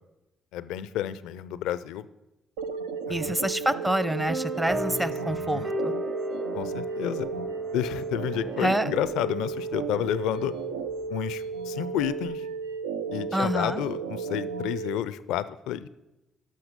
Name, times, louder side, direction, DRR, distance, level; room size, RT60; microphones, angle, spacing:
voice 1, 0.5-2.1 3.1-3.4 5.3-5.7 6.5-7.3 7.7-10.5 11.1-12.5 13.1-15.9, left 11 dB, 75° left, 16 dB, 0.4 m, -30 dB
sound 1, 2.6-15.0, right 5 dB, 90° right, 0.4 m, -34 dB
voice 2, 3.1-5.9 8.6-8.9 13.3-13.8, right 1 dB, 10° right, 16 dB, 0.6 m, -27 dB
sound 2, 4.3-12.4, left 1 dB, 30° right, 0.9 m, -37 dB
13.0 x 5.8 x 5.2 m, 0.97 s
hypercardioid pair, 50°, 0 cm